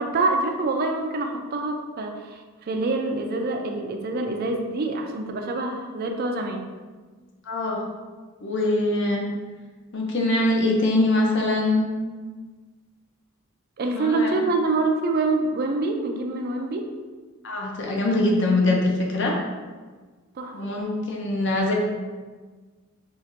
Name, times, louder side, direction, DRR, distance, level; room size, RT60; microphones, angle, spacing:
voice 1, 0.0-6.6 13.8-16.9 20.4-20.5, right 3 dB, 45° right, 3 dB, 0.4 m, -26 dB
voice 2, 7.5-7.8 8.4-9.2 9.9-11.9 13.9-14.3 17.4-19.4 20.5-21.7, left 2 dB, 55° left, -1 dB, 0.7 m, -23 dB
5.6 x 2.5 x 2.6 m, 1.4 s
head